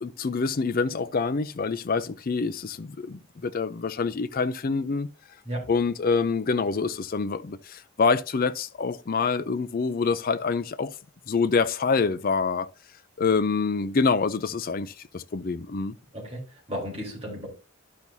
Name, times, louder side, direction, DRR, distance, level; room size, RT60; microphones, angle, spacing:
voice 1, 0.0-5.1 5.7-10.9 11.3-12.7 13.2-15.9, left 4 dB, 40° left, 0.4 m, -26 dB
voice 2, 16.1-17.5, equal, 25° right, 3.8 m, -34 dB
12.0 x 6.0 x 2.7 m
head